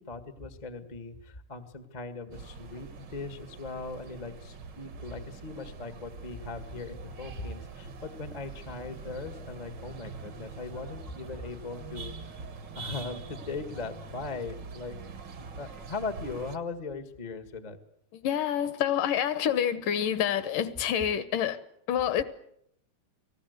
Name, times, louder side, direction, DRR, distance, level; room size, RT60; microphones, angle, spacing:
voice 1, 0.0-12.4 12.7-15.0 15.6-17.8, left 3 dB, 35° left, 0.6 m, -39 dB
sound 1, 2.3-16.6, right 4 dB, 55° right, 1.2 m, -44 dB
voice 2, 18.1-21.6 21.9-22.2, left 9 dB, 70° left, 2.5 m, -27 dB
29.0 x 19.5 x 8.2 m
omnidirectional pair, 4.2 m